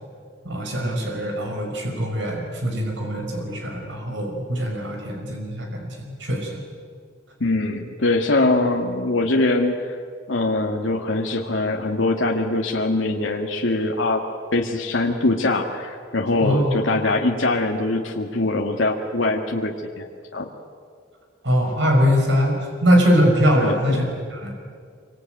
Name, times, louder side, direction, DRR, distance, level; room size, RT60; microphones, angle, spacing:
voice 1, 0.4-6.6 16.4-16.7 21.4-24.6, equal, 70° right, 2 dB, 5.5 m, -22 dB
voice 2, 7.4-10.0 10.3-14.2 14.5-20.5 23.6-24.0, left 2 dB, 85° left, 1 dB, 1.9 m, -22 dB
26.0 x 24.5 x 9.1 m, 2.1 s
head